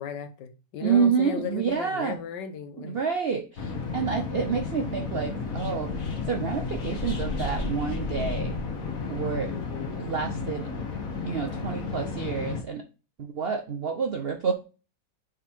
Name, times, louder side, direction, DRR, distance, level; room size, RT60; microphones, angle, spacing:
voice 1, 0.0-3.0 9.5-10.1, left 7 dB, 80° left, 1.5 m, -36 dB
voice 2, 0.8-2.2 2.8-5.9 6.3-8.6 9.1-9.5 10.0-10.7 11.2-12.8 13.2-14.5, right 6 dB, 65° right, 0.6 m, -28 dB
sound 1, 3.6-12.6, left 4 dB, 50° left, 1.8 m, -32 dB
7.2 x 3.8 x 4.3 m
omnidirectional pair, 1.9 m